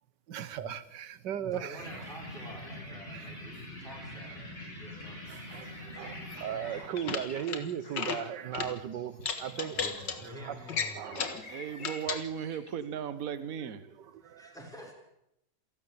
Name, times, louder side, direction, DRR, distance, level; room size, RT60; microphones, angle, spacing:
voice 1, 0.3-2.1 3.0-3.3 5.3-11.4 14.0-14.4, right 9 dB, 80° right, 1.7 m, -38 dB
voice 2, 1.4-5.4 9.7-11.3 14.4-14.9, equal, ahead, 5.7 m, -48 dB
sound 1, 1.8-6.8, left 1 dB, 35° left, 7.5 m, -44 dB
sound 2, 3.5-13.0 13.4-13.7, left 3 dB, 50° left, 2.7 m, -52 dB
sound 3, 6.8-7.6 7.9-8.2 8.5-8.7 9.2-10.2 10.7-11.4 11.8-12.2, left 6 dB, 90° left, 2.4 m, -34 dB
voice 3, 11.5-13.9, right 8 dB, 55° right, 1.5 m, -36 dB
27.5 x 12.5 x 8.6 m
omnidirectional pair, 1.9 m